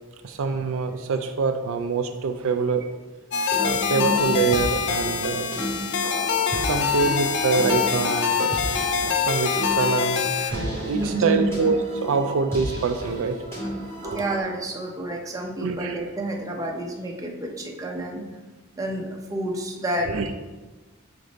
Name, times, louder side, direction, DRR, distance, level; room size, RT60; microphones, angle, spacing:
voice 1, 0.2-2.9 3.6-5.5 6.6-8.6 9.2-13.4 14.0-14.2 15.6-16.0 20.1-20.3, right 5 dB, 65° right, 7 dB, 0.4 m, -25 dB
sound 1, 3.3-10.5, left 7 dB, 55° left, 0.4 m, -25 dB
sound 2, 3.3-14.4, right 1 dB, 10° left, 2.0 m, -33 dB
voice 2, 3.9-4.3 10.5-10.7 10.9-11.5 14.0-18.2 18.8-20.1, right 1 dB, 15° right, 0 dB, 0.7 m, -29 dB
5.1 x 4.9 x 4.0 m, 1.2 s
head